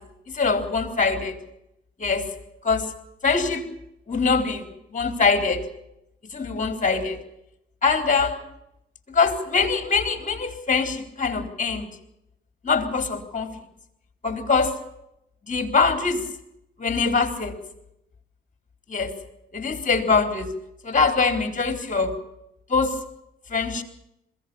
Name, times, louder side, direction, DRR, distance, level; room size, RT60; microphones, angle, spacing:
voice 1, 0.3-1.4 2.0-2.3 2.6-2.9 3.2-3.7 4.1-4.7 4.9-5.6 6.3-7.2 7.8-8.4 9.1-11.9 12.6-13.5 14.2-14.7 15.5-16.2 16.8-17.5 18.9-19.1 19.5-20.5 20.8-22.1 22.7-22.9 23.5-23.8, left 4 dB, 35° left, 8 dB, 4.0 m, -23 dB
21.5 x 16.5 x 8.6 m, 0.81 s
supercardioid pair, 60°, 21 cm